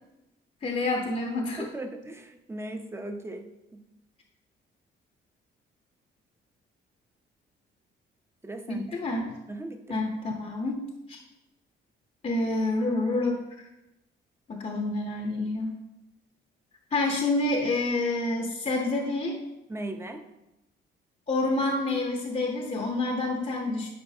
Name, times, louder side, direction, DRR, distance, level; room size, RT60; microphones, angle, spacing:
voice 1, 0.6-1.7 8.7-9.3 9.9-10.8 11.1-11.2 12.2-13.4 14.5-15.8 16.9-19.4 21.3-23.9, left 2 dB, 35° left, 1 dB, 0.8 m, -28 dB
voice 2, 1.6-3.4 3.7-3.8 8.4-8.9 9.5-10.0 19.7-20.2, right 1 dB, 10° right, 5 dB, 0.7 m, -38 dB
9.6 x 4.4 x 2.8 m, 0.93 s
cardioid pair, 90°, 20 cm